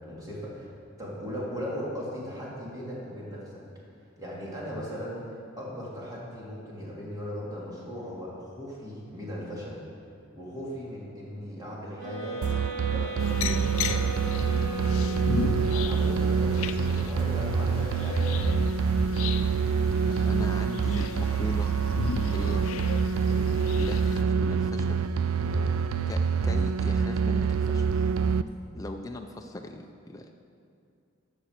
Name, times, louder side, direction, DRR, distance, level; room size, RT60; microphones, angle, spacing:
voice 1, 0.0-3.6 4.2-5.2 5.6-9.8 10.3-12.4 12.9-18.4 19.0-19.3 25.4-25.7, equal, 20° right, -6 dB, 2.8 m, -38 dB
sound 1, 12.0-15.9, right 3 dB, 50° right, 3.2 m, -37 dB
sound 2, 12.4-28.4, right 6 dB, 75° right, 0.4 m, -26 dB
sound 3, 13.2-24.2, left 5 dB, 80° left, 0.5 m, -35 dB
voice 2, 20.2-21.8 22.2-22.7 23.3-25.1 26.1-28.0 28.7-30.3, left 1 dB, 15° left, 3 dB, 0.5 m, -39 dB
11.5 x 7.1 x 6.6 m, 2.4 s
head